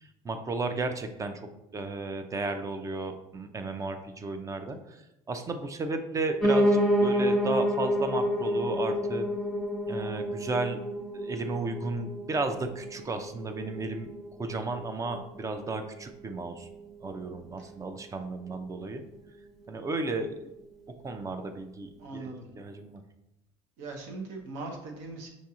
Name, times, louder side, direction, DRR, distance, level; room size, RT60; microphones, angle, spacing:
voice 1, 0.2-5.0 5.3-9.3 9.9-10.8 11.1-14.1 14.4-16.7 17.0-19.0 19.7-20.5 21.0-23.0, right 3 dB, 25° right, 7 dB, 0.5 m, -34 dB
Piano, 6.4-15.5 15.9-17.1 17.4-17.5 17.7-17.8 18.0-18.1 18.7-18.8, equal, ahead, 0.8 m, -29 dB
voice 2, 22.0-22.5 23.8-25.3, right 3 dB, 70° right, 2 dB, 0.9 m, -40 dB
6.0 x 2.7 x 2.4 m, 0.90 s
hypercardioid pair, 80°, 13 cm